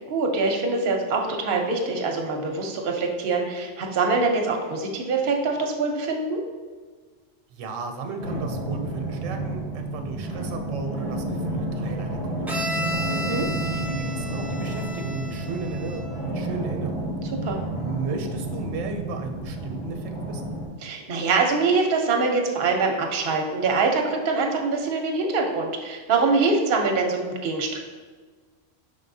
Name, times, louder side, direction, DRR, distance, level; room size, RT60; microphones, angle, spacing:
voice 1, 0.1-6.4 13.1-13.5 17.4-17.6 20.8-27.8, right 3 dB, 55° right, 2 dB, 0.7 m, -24 dB
voice 2, 7.5-13.0 13.6-17.1 17.7-20.5, right 4 dB, 90° right, 5 dB, 1.0 m, -35 dB
sound 1, 8.2-20.7, right 1 dB, 90° left, 2.0 m, -30 dB
Bowed string instrument, 12.5-16.2, equal, ahead, 0.4 m, -33 dB
5.2 x 3.6 x 2.6 m, 1.4 s
omnidirectional pair, 1.3 m